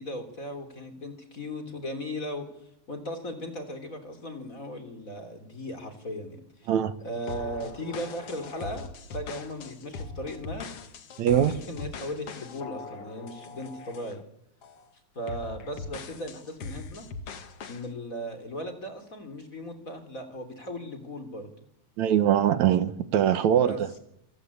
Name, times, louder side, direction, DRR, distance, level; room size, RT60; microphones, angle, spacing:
voice 1, 0.0-2.5 2.9-6.7 7.0-10.7 11.5-14.2 15.2-17.1 17.7-21.5 23.4-23.8, equal, 30° left, 3.5 m, -37 dB
sound 1, 7.3-14.2 14.6-14.9 15.3-17.9, left 4 dB, 55° left, 2.5 m, -41 dB
voice 2, 11.2-11.5 22.0-23.9, right 10 dB, 75° right, 2.5 m, -22 dB
27.0 x 25.5 x 8.5 m
omnidirectional pair, 3.3 m